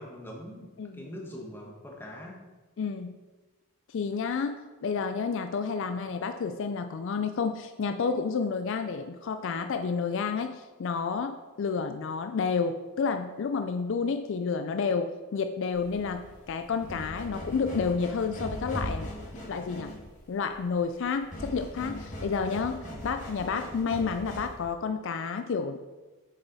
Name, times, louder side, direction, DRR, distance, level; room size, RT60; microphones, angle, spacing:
voice 1, 0.0-2.4, equal, 10° left, -1 dB, 1.3 m, -43 dB
voice 2, 2.8-3.1 3.9-19.1 19.5-19.9 20.3-25.8, left 5 dB, 55° left, 8 dB, 0.4 m, -30 dB
Scratching Wood, 15.7-24.7, equal, 35° left, 2.0 m, -40 dB
7.0 x 6.8 x 4.1 m, 1.2 s
head